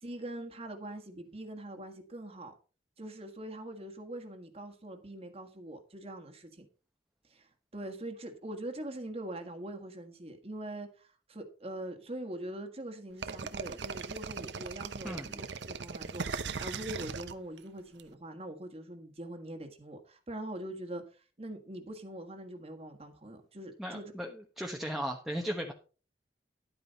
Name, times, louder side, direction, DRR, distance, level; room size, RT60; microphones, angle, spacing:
voice 1, 0.0-2.5 3.0-6.7 7.2-24.1, right 1 dB, 35° right, 1.6 m, -43 dB
sound 1, 13.2-18.0, right 5 dB, 85° right, 0.9 m, -38 dB
voice 2, 15.0-15.4 23.8-25.7, equal, ahead, 1.0 m, -37 dB
11.5 x 9.0 x 4.0 m
head